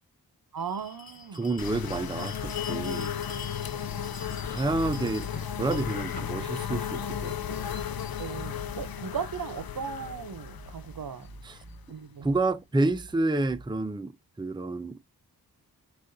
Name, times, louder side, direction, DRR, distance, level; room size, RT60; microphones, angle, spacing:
voice 1, 0.5-1.5 3.7-4.0 8.2-11.3 11.9-12.3, right 7 dB, 60° right, 0.8 m, -37 dB
Bell, 0.6-7.8, left 4 dB, 20° left, 1.9 m, -45 dB
voice 2, 1.3-3.1 4.5-5.3 5.5-7.6 11.4-11.6 12.2-14.1 14.4-15.0, right 2 dB, 10° right, 0.6 m, -29 dB
sound 1, 1.6-12.2, left 8 dB, 65° left, 0.6 m, -35 dB
sound 2, 2.4-3.9 4.4-6.9 7.3-9.8 10.3-14.0, right 2 dB, 25° right, 1.2 m, -49 dB
6.2 x 2.5 x 2.7 m
cardioid pair, 45°, 39 cm